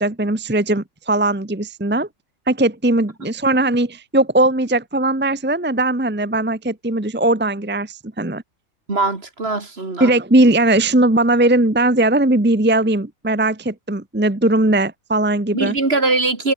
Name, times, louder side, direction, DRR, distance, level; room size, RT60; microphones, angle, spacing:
voice 1, 0.0-2.1 2.5-8.4 10.0-15.7, right 2 dB, 10° right, 1.1 m, -18 dB
voice 2, 8.9-10.1 15.5-16.5, right 3 dB, 50° right, 3.0 m, -21 dB
omnidirectional pair, 1.3 m